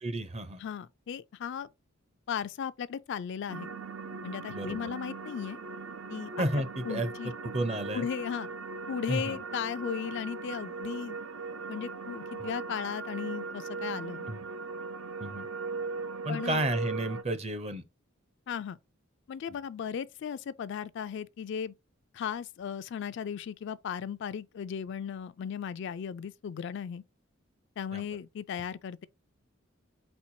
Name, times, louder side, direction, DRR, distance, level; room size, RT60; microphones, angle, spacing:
voice 1, 0.0-0.6 4.5-4.8 6.4-7.1 7.5-8.1 9.1-9.4 12.4-12.5 14.3-14.4 15.2-15.5 16.2-17.8 27.9-28.1, right 1 dB, 30° right, 0.6 m, -32 dB
voice 2, 0.6-1.7 2.3-3.7 4.2-5.6 6.1-6.5 6.9-7.3 7.9-8.5 8.9-11.2 11.7-14.3 16.3-16.6 18.5-18.8 19.3-21.7 22.1-27.0 27.8-29.1, left 7 dB, 60° left, 0.3 m, -36 dB
sound 1, 3.5-17.2, right 4 dB, 70° right, 0.5 m, -39 dB
4.4 x 4.3 x 2.7 m
head